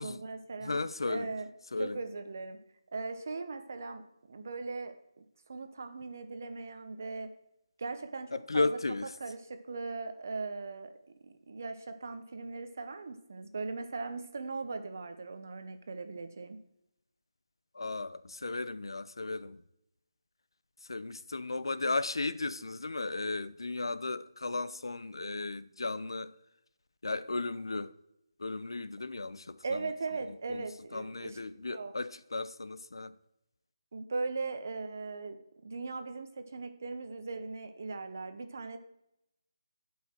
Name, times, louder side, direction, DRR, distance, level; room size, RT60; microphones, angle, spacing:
voice 1, 0.0-1.5 1.8-2.6 2.9-4.0 4.3-4.9 5.5-7.3 7.8-8.7 9.2-10.9 11.2-16.6 29.6-31.9 33.9-35.4 35.6-38.8, right 3 dB, 35° right, 0.8 m, -39 dB
voice 2, 0.6-1.3 1.7-2.0 8.3-9.1 17.7-19.6 20.9-26.3 27.0-27.9 28.4-29.9 30.5-33.1, left 3 dB, 70° left, 0.6 m, -35 dB
16.0 x 5.6 x 4.4 m
figure-of-eight pair, 180°, 3 cm